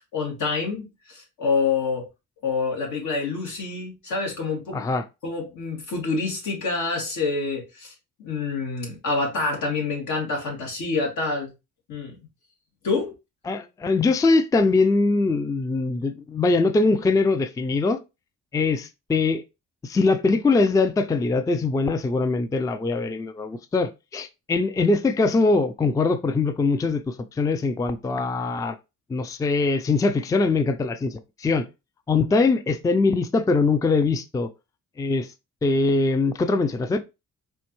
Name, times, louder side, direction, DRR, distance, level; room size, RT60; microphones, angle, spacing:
voice 1, 0.1-2.1 2.4-4.9 5.2-7.9 8.2-11.5 11.9-12.2 12.8-13.1, left 4 dB, 75° left, 1.9 m, -27 dB
voice 2, 4.7-5.0 13.5-18.0 18.5-19.4 19.8-28.8 29.1-31.7 32.1-34.5 35.0-35.3 35.6-37.0, left 3 dB, 10° left, 0.3 m, -22 dB
4.4 x 2.6 x 2.9 m
cardioid pair, 90°, 30 cm